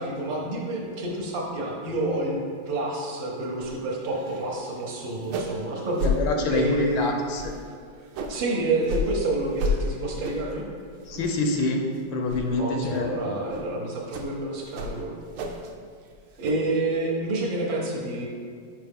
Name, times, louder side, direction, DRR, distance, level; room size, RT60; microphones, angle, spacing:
voice 1, 0.0-2.4 2.7-6.1 6.5-7.1 8.3-10.6 12.6-15.1 16.4-18.3, right 2 dB, 70° right, -2 dB, 1.6 m, -28 dB
sound 1, 3.6-3.8 4.1-4.5 4.8-4.9 5.2-5.6 6.0-6.2 6.6-6.9 7.3-8.4 8.8-9.1 9.6-9.8 10.2-10.5 11.0-11.5 11.8-12.0 12.3-12.5 12.9-13.1 13.5-13.7 14.1-14.3 14.7-15.7 16.0-16.5, left 1 dB, 85° right, 1.5 m, -31 dB
voice 2, 6.0-7.4 11.1-11.8 12.1-13.3, left 2 dB, 75° left, 3 dB, 1.3 m, -26 dB
5.9 x 4.8 x 3.5 m, 2.2 s
omnidirectional pair, 2.3 m